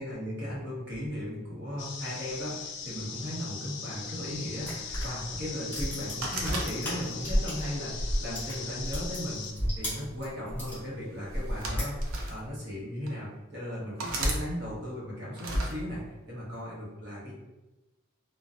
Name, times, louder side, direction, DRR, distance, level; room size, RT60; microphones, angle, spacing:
voice 1, 0.0-11.9 12.3-17.3, equal, 50° right, -6 dB, 0.9 m, -37 dB
sound 1, 1.8-9.5, left 5 dB, 55° left, 0.3 m, -40 dB
sound 2, 4.6-7.7 8.0-10.8 11.3-12.4, equal, 10° left, 0.9 m, -33 dB
sound 3, 6.2-7.3 7.9-9.1 10.0-10.3 11.3-12.4 13.1-13.2 14.0-14.4 15.4-15.7, right 1 dB, 80° right, 0.5 m, -32 dB
2.5 x 2.1 x 2.4 m, 1.1 s
head